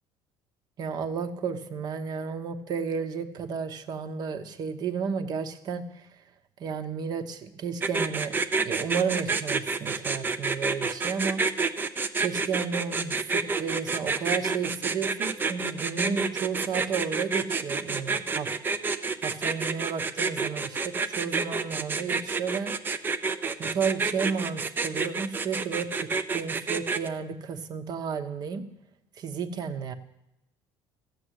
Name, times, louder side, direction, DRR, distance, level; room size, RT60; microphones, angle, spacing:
voice 1, 0.8-6.1 6.6-8.3 8.6-11.4 12.2-18.5 19.2-22.7 23.6-28.6 29.1-29.9, right 6 dB, 45° right, 9 dB, 1.1 m, -32 dB
sound 1, 7.8-27.1, right 4 dB, 20° right, 0.6 m, -28 dB
14.5 x 7.0 x 8.2 m, 0.86 s
cardioid pair, 130°, 9 cm